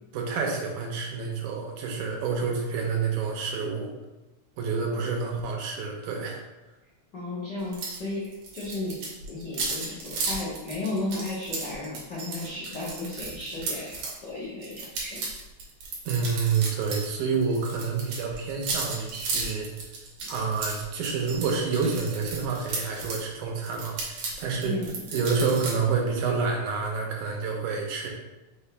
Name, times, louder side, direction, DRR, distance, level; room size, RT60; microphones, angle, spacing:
voice 1, 0.1-3.9 4.6-6.4 16.1-19.7 20.3-24.8 25.1-28.1, right 5 dB, 80° right, 0 dB, 2.2 m, -28 dB
voice 2, 7.1-9.0 9.3-15.2 24.6-25.0, left 2 dB, 80° left, -8 dB, 0.9 m, -34 dB
sound 1, 7.7-14.1 14.6-17.1 17.3-23.2 23.6-25.7, right 3 dB, 65° right, 1.8 m, -34 dB
5.2 x 2.9 x 3.3 m, 1.0 s
omnidirectional pair, 3.5 m